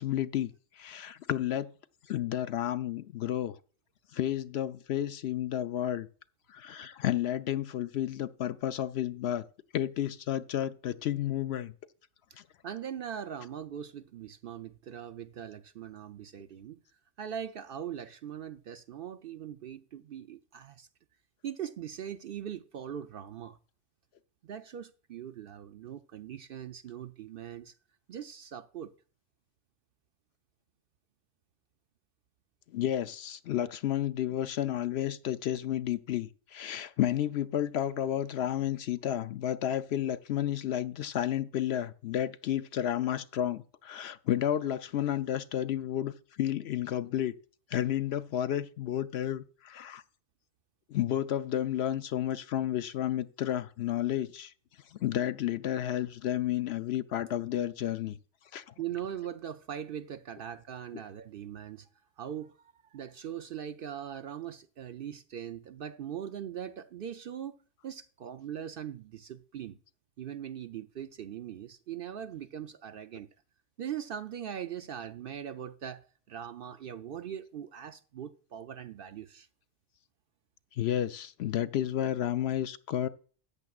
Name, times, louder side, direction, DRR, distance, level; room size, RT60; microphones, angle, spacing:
voice 1, 0.0-1.7 2.1-3.5 4.1-6.1 6.5-9.4 9.7-11.7 12.4-12.5 32.7-47.3 47.7-50.0 50.9-54.5 54.9-58.2 58.5-58.7 80.7-83.1, left 11 dB, 65° left, 0.8 m, -31 dB
voice 2, 12.6-16.8 17.2-20.9 21.4-23.6 24.4-27.7 28.1-28.9 58.8-61.9 62.2-62.5 62.9-67.5 67.8-69.8 70.2-73.3 73.8-79.5, right 9 dB, 60° right, 0.6 m, -41 dB
13.5 x 9.5 x 2.4 m
omnidirectional pair, 1.2 m